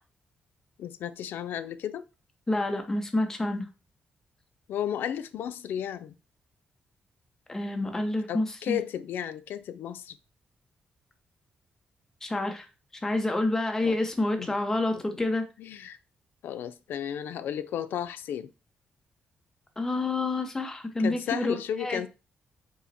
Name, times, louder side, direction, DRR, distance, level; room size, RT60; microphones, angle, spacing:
voice 1, 0.8-2.0 4.7-6.2 8.3-10.2 13.8-14.0 14.4-14.5 15.1-15.2 15.6-16.0 16.4-18.5 21.0-22.1, left 10 dB, 90° left, 0.4 m, -33 dB
voice 2, 2.5-3.7 7.5-8.8 12.2-12.7 13.0-15.4 19.8-22.0, left 2 dB, 15° left, 0.7 m, -28 dB
5.4 x 2.1 x 4.0 m
wide cardioid pair, 175°, 3 cm